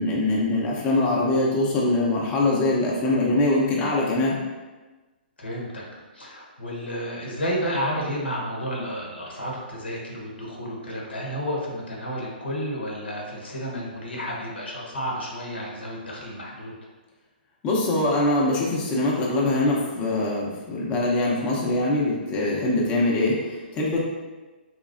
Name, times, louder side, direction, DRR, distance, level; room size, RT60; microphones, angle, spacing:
voice 1, 0.0-4.4 17.6-24.0, left 2 dB, 20° left, -4 dB, 0.7 m, -23 dB
voice 2, 5.4-16.7, equal, 85° left, -2 dB, 1.0 m, -31 dB
4.0 x 3.0 x 2.5 m, 1.2 s
hypercardioid pair, 130°, 6 cm